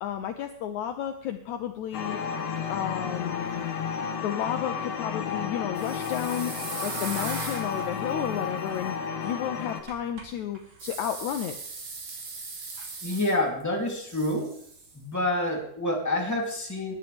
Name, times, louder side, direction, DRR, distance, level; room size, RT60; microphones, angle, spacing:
voice 1, 0.0-2.2 2.7-3.8 4.2-6.5 6.8-9.0 9.2-11.5, left 10 dB, 80° left, 7 dB, 1.7 m, -32 dB
sound 1, 1.9-9.8, left 6 dB, 60° left, 1.8 m, -32 dB
sound 2, 5.8-8.8 10.8-13.6 13.9-14.9, right 4 dB, 55° right, 4.0 m, -39 dB
sound 3, 6.3-8.3 8.7-10.3 10.5-10.9 12.8-12.9, right 3 dB, 40° right, 2.5 m, -43 dB
voice 2, 13.0-14.5 14.9-16.9, left 1 dB, 5° left, -2 dB, 2.5 m, -28 dB
19.5 x 10.5 x 3.5 m, 0.68 s
omnidirectional pair, 4.2 m